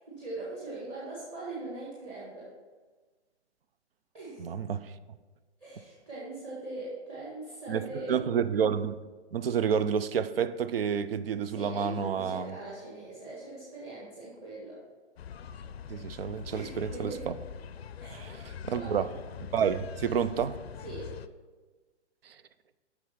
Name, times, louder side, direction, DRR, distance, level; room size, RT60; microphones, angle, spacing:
voice 1, 0.0-2.5 4.1-4.5 5.6-8.2 11.5-14.8 16.5-17.3 18.0-18.3 18.7-19.1 20.8-21.1, right 2 dB, 20° right, -8 dB, 1.6 m, -41 dB
voice 2, 4.4-4.9 7.7-9.0 9.3-12.5 15.9-17.3 18.1-19.1 19.5-20.6 22.2-22.4, right 7 dB, 55° right, 14 dB, 0.6 m, -30 dB
sound 1, 15.2-21.3, left 7 dB, 60° left, 0.5 m, -43 dB
7.9 x 5.9 x 5.7 m, 1.3 s
hypercardioid pair, 165°, 34 cm